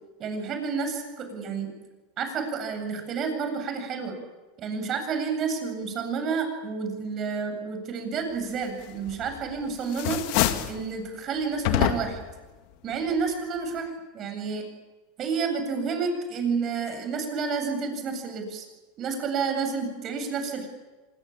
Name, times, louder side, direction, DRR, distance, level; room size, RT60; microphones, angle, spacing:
voice 1, 0.2-1.7 2.2-4.2 4.6-10.2 10.7-12.2 12.8-14.6 15.2-18.6 19.0-20.7, right 5 dB, 40° right, 6 dB, 7.9 m, -30 dB
sound 1, 9.1-9.5 9.8-10.8 11.6-12.3, left 13 dB, 60° left, 2.1 m, -26 dB
26.0 x 22.0 x 8.9 m, 1.2 s
supercardioid pair, 120°, 0 cm